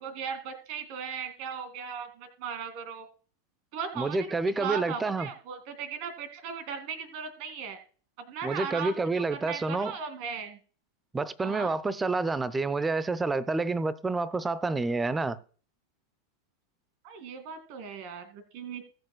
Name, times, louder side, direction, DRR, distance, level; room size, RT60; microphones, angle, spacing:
voice 1, 0.0-3.1 3.7-7.8 8.2-10.6 11.4-11.7 17.0-18.8, right 7 dB, 45° right, 2.3 m, -37 dB
voice 2, 4.0-5.3 8.4-9.9 11.1-15.4, right 3 dB, 10° right, 0.7 m, -28 dB
21.0 x 7.4 x 2.3 m
figure-of-eight pair, 90°, 0 cm